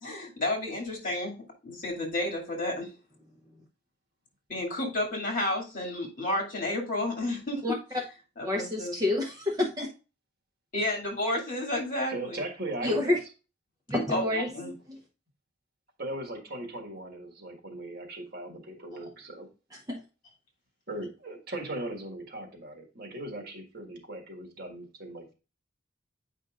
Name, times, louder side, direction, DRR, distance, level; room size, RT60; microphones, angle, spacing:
voice 1, 0.0-2.9 4.5-7.6 8.4-9.0 10.7-12.4 14.1-14.7, left 1 dB, 50° left, -1 dB, 2.4 m, -31 dB
voice 2, 8.4-9.9 12.8-13.2 13.9-15.0 19.9-20.0, left 2 dB, 20° right, 1 dB, 0.8 m, -28 dB
voice 3, 12.1-13.2 16.0-19.5 20.9-25.3, right 1 dB, 55° right, 3 dB, 1.7 m, -38 dB
8.9 x 5.3 x 2.4 m, 0.32 s
head